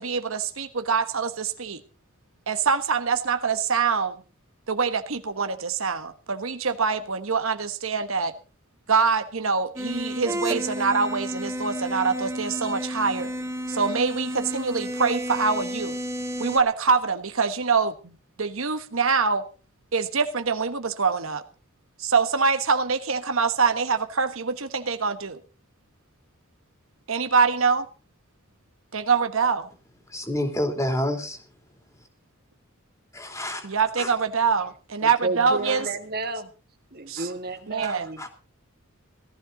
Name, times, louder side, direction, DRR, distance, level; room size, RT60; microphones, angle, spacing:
voice 1, 0.0-1.8 2.5-4.2 4.7-8.3 8.9-13.3 13.7-16.0 16.4-18.1 18.4-19.4 19.9-21.4 22.0-25.4 27.1-27.9 28.9-29.7 33.6-35.8 37.1-37.3 37.7-38.1, right 5 dB, 75° right, 1.4 m, -24 dB
sound 1, 9.8-16.6, equal, 15° right, 1.5 m, -31 dB
voice 2, 30.1-31.4 33.1-34.1 35.6-35.8 37.2-37.3 37.8-38.3, left 1 dB, 15° left, 3.0 m, -29 dB
voice 3, 35.0-36.5 36.9-38.3, right 3 dB, 45° right, 1.9 m, -31 dB
18.0 x 14.0 x 3.9 m
head